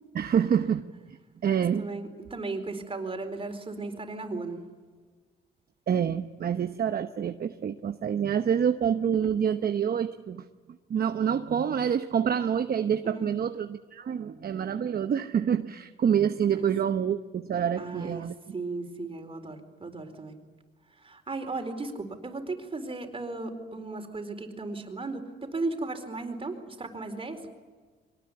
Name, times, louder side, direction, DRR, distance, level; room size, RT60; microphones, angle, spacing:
voice 1, 0.1-0.8 1.4-1.9 5.9-10.4 10.9-18.3, right 8 dB, 50° right, 8 dB, 1.0 m, -27 dB
voice 2, 1.8-4.6 13.0-13.3 17.8-18.2 18.5-20.3 21.0-27.4, right 3 dB, 30° right, 6 dB, 4.2 m, -36 dB
23.5 x 19.0 x 9.7 m, 1.5 s
cardioid pair, 90°, 20 cm